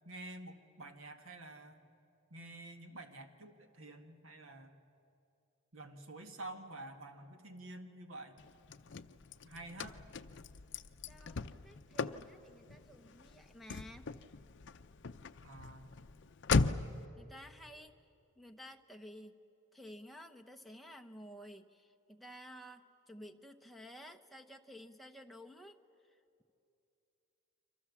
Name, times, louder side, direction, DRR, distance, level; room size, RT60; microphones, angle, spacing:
voice 1, 0.0-1.8 2.3-4.8 5.7-8.4 9.4-10.0 15.4-16.0, right 2 dB, 70° right, 6 dB, 1.7 m, -49 dB
Car / Slam, 8.4-17.1, left 4 dB, 55° left, 0.6 m, -38 dB
voice 2, 11.0-14.1 17.2-17.9 18.4-19.4 19.7-25.8, equal, ahead, 3 dB, 1.0 m, -53 dB
28.5 x 25.5 x 7.3 m, 2.7 s
head